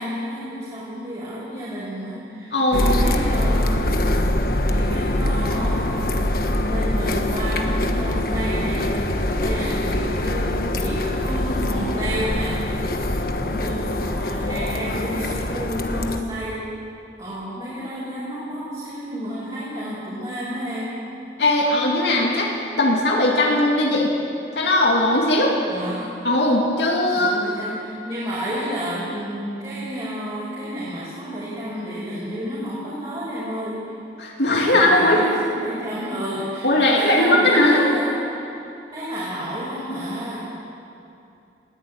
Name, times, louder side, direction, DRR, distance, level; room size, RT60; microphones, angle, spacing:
voice 1, 0.0-4.0 4.7-6.2 6.7-8.9 9.4-12.6 13.3-16.7 17.2-21.0 25.7-26.2 27.1-33.9 34.6-38.5 38.9-40.4, equal, 30° right, -9 dB, 5.6 m, -30 dB
voice 2, 2.5-2.9 21.4-22.5 22.8-24.1 24.5-25.5 26.2-27.4 34.2-35.2 36.6-37.8, left 1 dB, 80° left, -2 dB, 2.7 m, -18 dB
sound 1, 2.7-16.2, left 1 dB, 55° left, 1.3 m, -23 dB
20.5 x 15.0 x 9.0 m, 2.7 s
head